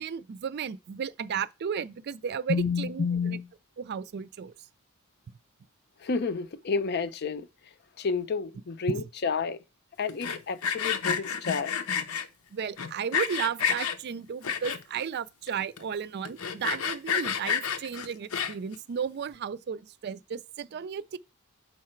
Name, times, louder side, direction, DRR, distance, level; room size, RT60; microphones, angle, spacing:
voice 1, 0.0-3.4 3.8-4.5 8.9-9.0 12.5-21.2, right 7 dB, 50° right, 0.4 m, -34 dB
voice 2, 2.5-3.5 6.0-7.5 8.0-9.6 10.0-11.8, left 5 dB, 50° left, 0.5 m, -30 dB
Sawing, 10.1-12.2 12.8-14.0 14.4-15.0 15.5-15.6 15.8-15.9 16.2-18.7, left 7 dB, 85° left, 0.7 m, -30 dB
6.4 x 4.8 x 4.4 m
head